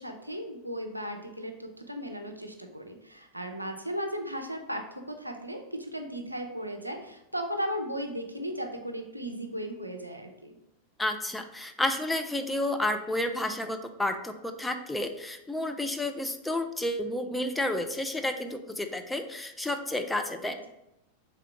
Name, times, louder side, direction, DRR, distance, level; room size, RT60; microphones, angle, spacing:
voice 1, 0.0-10.6, equal, 85° right, 4 dB, 0.5 m, -36 dB
voice 2, 11.0-20.7, left 1 dB, 5° left, 6 dB, 0.3 m, -31 dB
3.7 x 3.4 x 3.5 m, 0.89 s
figure-of-eight pair, 90°, 0 cm